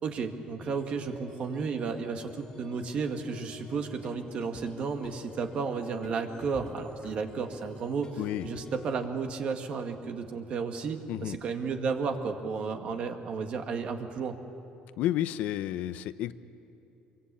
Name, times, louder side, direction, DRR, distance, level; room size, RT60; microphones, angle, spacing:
voice 1, 0.0-14.4, right 5 dB, 45° right, 5 dB, 1.9 m, -33 dB
sound 1, 0.6-9.1, left 4 dB, 30° left, 2.1 m, -48 dB
voice 2, 15.0-16.3, left 13 dB, 70° left, 13 dB, 0.7 m, -31 dB
25.0 x 23.0 x 8.6 m, 2.9 s
cardioid pair, 135°, 3 cm